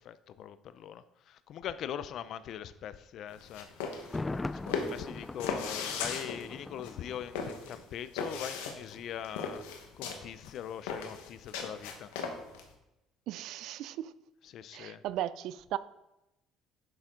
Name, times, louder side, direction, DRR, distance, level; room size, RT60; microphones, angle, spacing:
voice 1, 0.0-3.9 4.5-9.6 10.0-12.1 14.4-15.0, left 10 dB, 65° left, 14 dB, 0.6 m, -42 dB
sound 1, 3.3-12.7, left 5 dB, 90° left, 1.3 m, -37 dB
Thunder, 4.0-7.9 8.2-8.3, left 2 dB, 20° left, 0.4 m, -41 dB
voice 2, 13.3-14.1 14.7-15.8, right 13 dB, 70° right, 16 dB, 0.4 m, -36 dB
10.5 x 6.9 x 3.8 m, 0.94 s
supercardioid pair, 75°, 0 cm